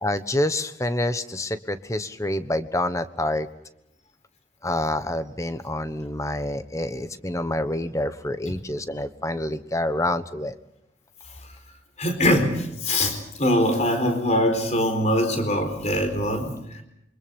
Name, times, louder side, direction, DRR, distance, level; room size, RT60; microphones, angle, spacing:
voice 1, 0.0-3.5 4.6-10.5, left 1 dB, 15° left, 11 dB, 1.2 m, -27 dB
voice 2, 12.0-16.6, left 1 dB, 35° left, 7 dB, 4.4 m, -22 dB
28.0 x 25.5 x 5.4 m, 0.82 s
head